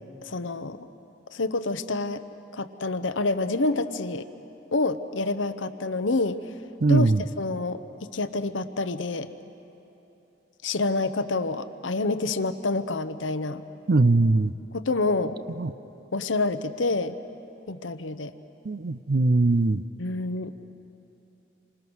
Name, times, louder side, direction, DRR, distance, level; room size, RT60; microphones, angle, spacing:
voice 1, 0.2-0.8 1.3-2.2 2.5-4.3 4.7-6.4 6.9-7.8 8.1-9.3 10.6-13.6 14.7-15.4 16.1-17.2 17.7-18.3 20.0-20.6, left 3 dB, 80° left, 11 dB, 0.9 m, -27 dB
voice 2, 6.8-7.2 13.9-14.5 15.6-15.7 18.7-19.8, right 2 dB, 55° right, 15 dB, 0.5 m, -21 dB
28.0 x 26.0 x 6.3 m, 2.9 s
head